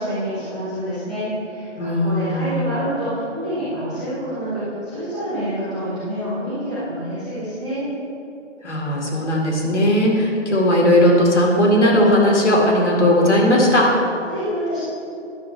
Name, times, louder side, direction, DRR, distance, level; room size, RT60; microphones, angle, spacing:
voice 1, 0.0-7.9 14.3-14.8, equal, 5° right, -16 dB, 0.8 m, -27 dB
voice 2, 1.8-2.5 8.6-13.9, left 1 dB, 65° left, -2 dB, 2.1 m, -17 dB
11.0 x 7.1 x 3.4 m, 2.7 s
hypercardioid pair, 175°, 37 cm